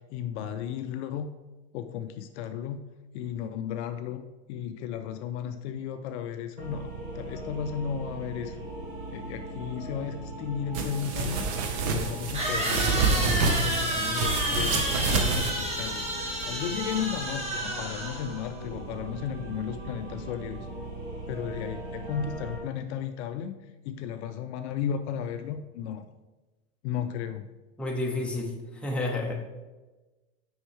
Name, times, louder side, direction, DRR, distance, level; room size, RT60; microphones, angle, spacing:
voice 1, 0.1-1.3 1.7-2.8 3.1-8.6 9.1-11.5 11.8-16.1 16.4-20.6 21.3-23.5 23.9-26.0 26.8-27.5, left 8 dB, 60° left, 9 dB, 0.5 m, -34 dB
sound 1, 6.6-22.6, right 1 dB, 85° right, 2.1 m, -40 dB
sound 2, 10.7-10.8 12.3-18.5, right 1 dB, 15° right, 1.4 m, -31 dB
sound 3, 10.7-15.5, right 4 dB, 60° right, 1.1 m, -28 dB
voice 2, 27.8-29.5, left 2 dB, 5° left, -1 dB, 1.0 m, -30 dB
6.0 x 5.5 x 3.3 m, 1.2 s
hypercardioid pair, 110°, 39 cm